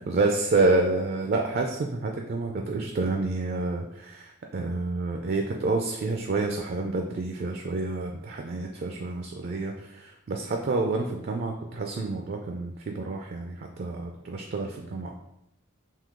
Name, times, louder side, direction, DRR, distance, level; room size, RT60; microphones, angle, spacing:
voice 1, 0.0-15.1, right 3 dB, 50° right, 2 dB, 0.3 m, -28 dB
3.7 x 2.7 x 3.6 m, 0.81 s
head